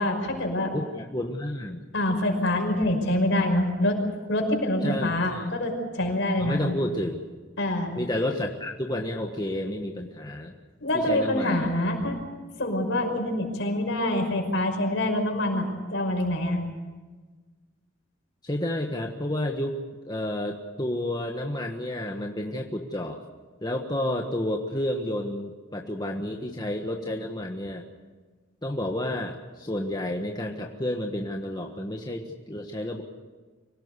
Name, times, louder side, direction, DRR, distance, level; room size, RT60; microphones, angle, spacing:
voice 1, 0.0-0.7 1.9-4.0 4.3-6.6 7.6-7.9 10.8-12.2 12.6-16.6, left 1 dB, 65° left, 3 dB, 5.6 m, -25 dB
voice 2, 0.7-1.8 4.8-5.5 6.4-7.2 7.9-10.5 10.9-11.7 18.4-19.8 20.0-23.2 23.6-27.8 28.6-33.0, left 1 dB, 20° left, 1 dB, 1.4 m, -30 dB
25.0 x 18.0 x 8.2 m, 1.4 s
head